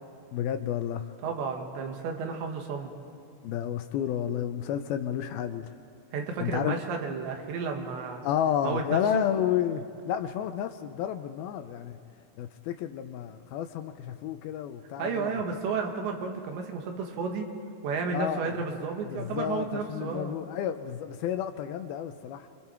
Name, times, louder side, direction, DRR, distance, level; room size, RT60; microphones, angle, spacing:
voice 1, 0.3-1.1 3.4-5.7 6.4-6.8 8.2-12.0 12.4-15.4 18.1-18.5 19.1-22.5, left 10 dB, 80° left, 8 dB, 2.2 m, -31 dB
voice 2, 1.2-2.9 6.1-8.2 8.6-9.2 15.0-17.5 17.8-20.4, right 5 dB, 80° right, 2 dB, 4.0 m, -32 dB
29.0 x 24.5 x 4.5 m, 2.5 s
omnidirectional pair, 5.0 m